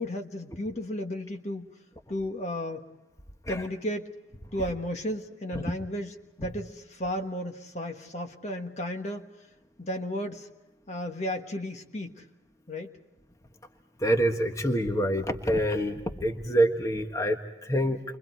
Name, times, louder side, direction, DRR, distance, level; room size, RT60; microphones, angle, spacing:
voice 1, 0.0-1.7 2.1-2.9 3.5-4.1 4.5-9.3 9.8-10.5 10.9-12.3 12.7-12.9, left 1 dB, 40° left, 4 dB, 1.5 m, -34 dB
voice 2, 14.0-18.0, right 1 dB, 20° left, 4 dB, 1.4 m, -26 dB
29.5 x 24.0 x 4.6 m, 1.0 s
head